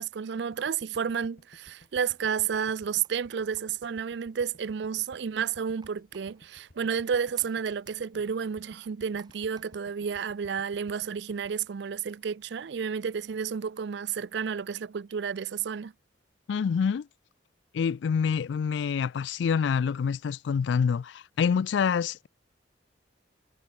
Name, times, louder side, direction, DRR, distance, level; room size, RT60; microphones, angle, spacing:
voice 1, 0.0-15.9, right 7 dB, 60° right, 0.4 m, -31 dB
sound 1, 0.5-12.7, left 1 dB, 50° left, 2.4 m, -58 dB
sound 2, 1.7-10.5, right 4 dB, 20° right, 1.8 m, -62 dB
voice 2, 16.5-17.1 17.7-22.3, left 6 dB, 70° left, 0.3 m, -26 dB
head